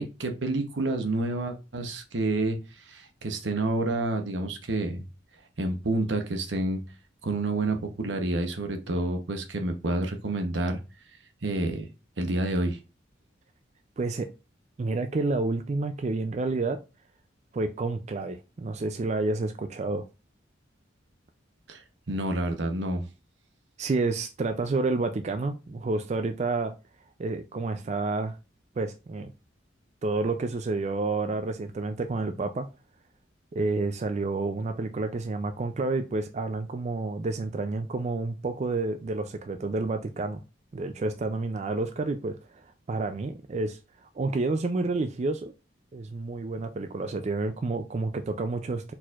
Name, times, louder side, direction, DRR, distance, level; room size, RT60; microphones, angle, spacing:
voice 1, 0.0-5.1 5.6-6.8 7.2-10.8 11.4-11.8 12.2-12.8 21.7-23.1, right 2 dB, 75° right, 0.9 m, -29 dB
voice 2, 14.0-14.3 14.8-16.8 17.5-20.0 23.8-26.7 27.2-28.3 28.8-29.3 30.0-32.7 33.5-40.4 40.7-45.5 45.9-48.9, right 3 dB, 35° right, 0.4 m, -29 dB
4.4 x 4.2 x 2.4 m
head